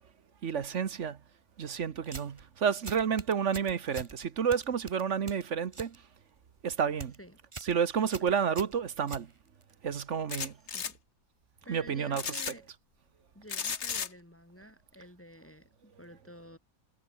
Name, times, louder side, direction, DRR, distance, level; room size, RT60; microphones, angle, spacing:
voice 1, 0.4-1.2 1.6-5.9 6.6-7.1 7.6-9.3 9.8-10.5 11.7-12.5, right 7 dB, 60° right, 1.4 m, -30 dB
sound 1, 2.0-2.4 2.8-4.1 4.5-6.0 6.3-6.6 6.9-7.2 7.5-7.8 8.1-9.7, right 3 dB, 20° right, 1.5 m, -44 dB
sound 2, 10.3-10.9 12.1-12.5 13.5-14.1, left 6 dB, 50° left, 1.6 m, -34 dB
voice 2, 10.3-11.0 11.6-12.7 13.3-16.6, equal, 10° left, 3.6 m, -51 dB
omnidirectional pair, 1.5 m